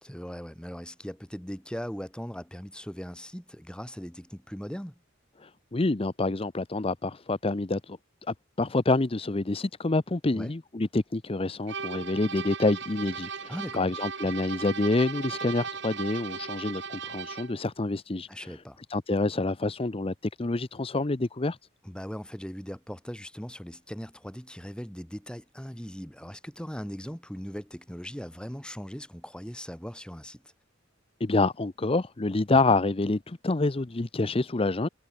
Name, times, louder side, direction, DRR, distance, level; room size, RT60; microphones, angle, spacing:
voice 1, 0.0-4.9 10.3-10.5 13.5-13.9 18.3-18.8 21.8-30.4, equal, 5° left, 3.4 m, -39 dB
voice 2, 5.4-8.0 8.3-18.6 18.9-21.6 31.2-34.9, left 2 dB, 30° left, 0.7 m, -27 dB
sound 1, 11.7-17.6, right 5 dB, 65° right, 4.2 m, -37 dB
head